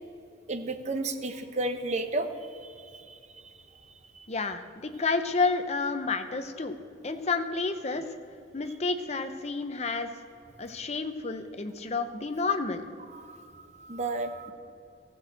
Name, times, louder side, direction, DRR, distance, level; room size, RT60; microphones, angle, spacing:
voice 1, 0.5-3.2 4.2-4.3 13.1-14.5, right 2 dB, 40° right, 7 dB, 0.8 m, -33 dB
voice 2, 4.3-6.8 7.0-8.0 8.5-10.1 10.6-12.8, left 4 dB, 35° left, 8 dB, 0.7 m, -30 dB
15.0 x 6.2 x 7.6 m, 2.6 s
head